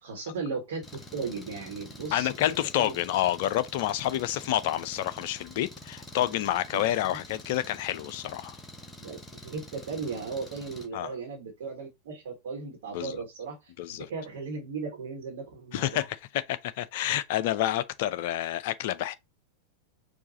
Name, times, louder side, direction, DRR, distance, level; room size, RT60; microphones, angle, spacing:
voice 1, 0.0-2.9 6.7-6.8 7.1-7.2 9.0-16.1, right 4 dB, 55° right, 1.2 m, -37 dB
Engine, 0.8-10.9, left 1 dB, 10° left, 1.0 m, -47 dB
voice 2, 2.1-8.6 10.9-11.1 12.9-13.2 13.8-14.1 15.7-16.2 16.5-19.1, left 13 dB, 50° left, 0.4 m, -29 dB
4.6 x 2.4 x 4.0 m
figure-of-eight pair, 90°, 0 cm